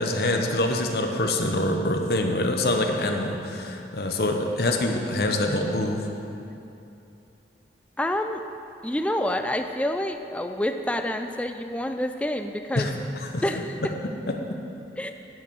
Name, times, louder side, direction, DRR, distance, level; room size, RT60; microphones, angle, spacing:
voice 1, 0.0-6.0 12.8-12.9 13.2-13.4 14.3-14.4, left 1 dB, 55° left, 3 dB, 0.9 m, -25 dB
voice 2, 8.0-8.4 8.8-12.9 13.4-13.9 15.0-15.1, left 1 dB, 5° left, 7 dB, 0.4 m, -28 dB
11.0 x 6.0 x 6.3 m, 2.8 s
head